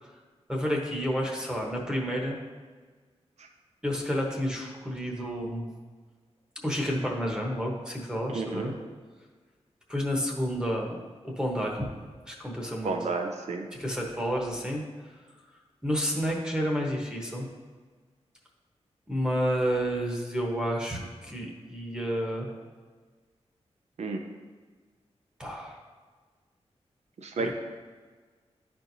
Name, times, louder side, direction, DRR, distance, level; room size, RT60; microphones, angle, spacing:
voice 1, 0.5-2.4 3.8-5.6 6.6-8.7 9.9-10.9 11.2-11.8 12.3-13.0 13.7-14.8 15.8-17.5 19.1-22.5 25.4-25.8 27.4-27.5, equal, 5° right, -1 dB, 1.0 m, -30 dB
voice 2, 8.3-8.7 12.8-13.7 24.0-24.2 27.2-27.5, right 3 dB, 80° right, 3 dB, 0.7 m, -31 dB
11.0 x 4.4 x 2.7 m, 1.5 s
wide cardioid pair, 145°, 11 cm